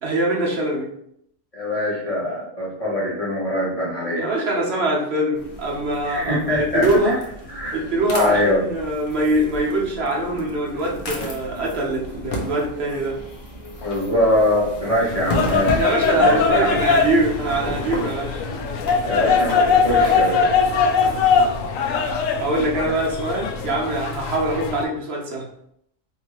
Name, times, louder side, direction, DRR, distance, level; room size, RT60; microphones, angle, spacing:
voice 1, 0.0-0.9 4.1-7.2 7.7-13.2 15.8-18.4 22.4-25.5, right 1 dB, 55° right, -2 dB, 1.1 m, -23 dB
voice 2, 1.5-4.3 6.0-7.1 7.5-7.8 8.2-8.6 13.8-15.8 16.2-16.7 19.0-20.5, left 1 dB, 30° left, -7 dB, 1.1 m, -23 dB
sound 1, 5.3-21.7, equal, 55° left, 1.0 m, -33 dB
sound 2, 15.1-24.8, left 5 dB, 85° left, 1.0 m, -21 dB
4.4 x 2.7 x 3.0 m, 0.72 s
omnidirectional pair, 1.3 m